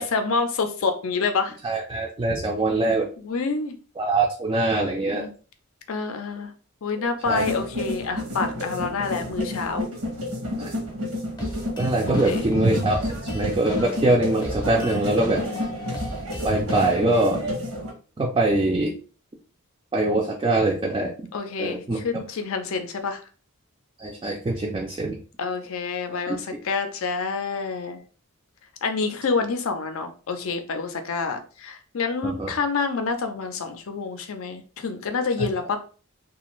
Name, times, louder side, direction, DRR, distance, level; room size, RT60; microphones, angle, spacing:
voice 1, 0.0-1.6 3.2-3.8 4.8-5.3 5.9-6.5 6.8-9.9 12.1-12.5 15.4-15.8 21.3-23.2 25.4-28.0 28.8-35.8, left 4 dB, 65° left, 7 dB, 0.5 m, -28 dB
voice 2, 1.6-3.1 4.0-5.3 7.0-7.4 10.6-10.7 11.8-13.0 13.3-15.4 16.4-17.4 18.2-18.9 19.9-21.1 21.6-22.0 24.0-25.2 26.3-26.4 32.2-32.5 35.4-35.5, right 2 dB, 20° right, -1 dB, 0.4 m, -23 dB
sound 1, 7.2-17.9, left 1 dB, 85° right, 0.9 m, -31 dB
sound 2, 11.4-17.4, left 1 dB, 20° left, 0.6 m, -35 dB
2.5 x 2.3 x 3.0 m, 0.38 s
head